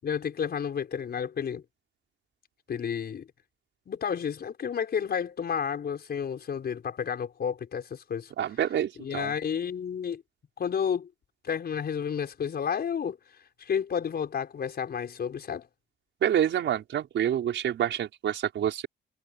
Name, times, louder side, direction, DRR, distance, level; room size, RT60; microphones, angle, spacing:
voice 1, 0.0-1.6 2.7-3.3 3.9-8.3 9.0-10.2 10.6-11.1 11.4-13.2 13.6-15.7, left 7 dB, 55° left, 5.2 m, -31 dB
voice 2, 8.4-9.3 16.2-18.9, right 10 dB, 70° right, 5.7 m, -27 dB
cardioid pair, 90°, 20 cm